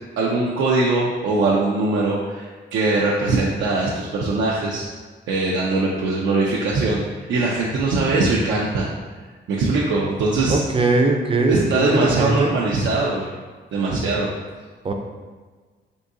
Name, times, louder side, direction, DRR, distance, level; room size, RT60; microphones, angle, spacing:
voice 1, 0.2-4.9 5.3-8.9 9.5-10.6 11.5-13.3 13.7-14.3, right 3 dB, 85° right, -4 dB, 0.5 m, -21 dB
voice 2, 10.5-12.5 14.8-14.9, right 3 dB, 30° right, 3 dB, 0.4 m, -20 dB
3.7 x 2.7 x 2.6 m, 1.4 s
cardioid pair, 115°, 19 cm